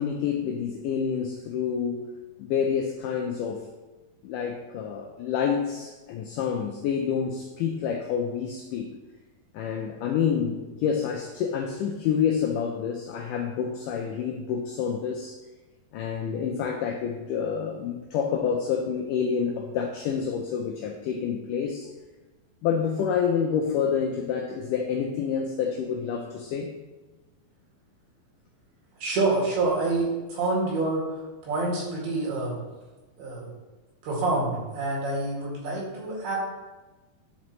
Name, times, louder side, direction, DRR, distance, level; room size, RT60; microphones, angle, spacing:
voice 1, 0.0-2.0 2.4-3.7 4.2-8.9 9.5-15.4 15.9-21.9 22.6-26.7, left 7 dB, 90° left, 1 dB, 1.9 m, -28 dB
voice 2, 29.0-31.1 31.4-32.6 33.2-33.5 34.0-36.4, right 3 dB, 85° right, -5 dB, 4.1 m, -27 dB
10.5 x 4.9 x 3.1 m, 1.2 s
omnidirectional pair, 4.4 m